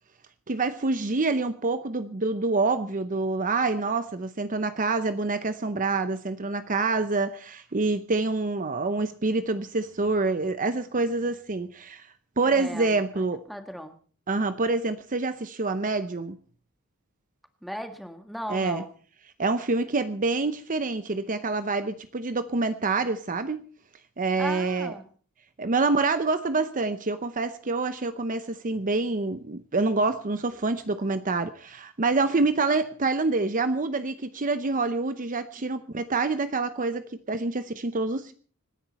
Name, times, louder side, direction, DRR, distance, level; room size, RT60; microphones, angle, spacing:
voice 1, 0.5-12.1 12.4-13.4 14.3-16.4 18.5-18.8 19.4-23.6 24.2-24.9 25.6-38.3, right 3 dB, 40° right, 11 dB, 0.7 m, -26 dB
voice 2, 12.4-14.0 17.6-18.9 24.4-25.1, equal, ahead, 6 dB, 1.7 m, -37 dB
26.0 x 10.5 x 4.2 m, 0.42 s
head